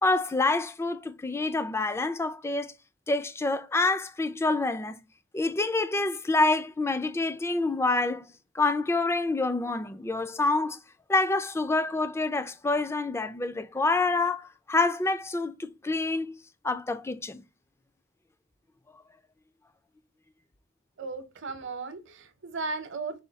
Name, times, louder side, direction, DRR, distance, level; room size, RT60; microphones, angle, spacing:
voice 1, 0.0-2.7 3.1-5.0 5.3-8.3 8.5-10.8 11.1-16.4 16.6-17.4, left 3 dB, 15° left, 0.3 m, -27 dB
voice 2, 21.0-23.2, right 3 dB, 60° right, 0.8 m, -36 dB
4.9 x 2.3 x 3.9 m
head